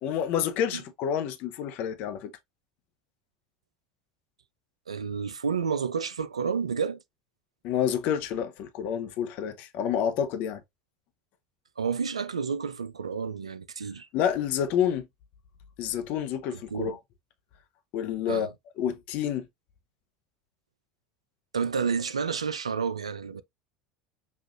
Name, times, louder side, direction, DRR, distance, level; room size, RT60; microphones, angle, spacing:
voice 1, 0.0-2.3 7.6-10.6 14.1-15.1 15.8-17.0 17.9-18.5 18.8-19.5, left 9 dB, 55° left, 0.8 m, -28 dB
voice 2, 4.9-7.0 11.8-14.1 16.5-17.0 18.3-18.5 21.5-23.4, right 6 dB, 90° right, 0.4 m, -30 dB
6.3 x 2.5 x 2.5 m
hypercardioid pair, 75°, 3 cm